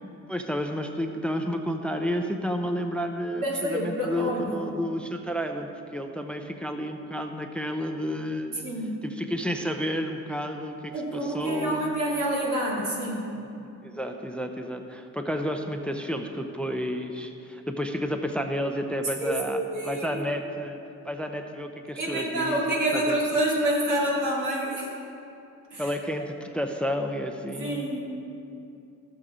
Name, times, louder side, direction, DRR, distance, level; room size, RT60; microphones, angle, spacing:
voice 1, 0.3-8.7 9.0-11.9 13.8-20.8 21.0-23.2 25.8-27.9, equal, 5° left, 5 dB, 0.5 m, -31 dB
voice 2, 3.4-4.6 8.6-9.0 10.9-13.3 19.2-20.2 22.0-24.9 25.7-25.9 27.6-28.0, right 1 dB, 85° right, -4 dB, 2.6 m, -28 dB
14.0 x 6.6 x 4.9 m, 2.7 s
wide cardioid pair, 145°, 31 cm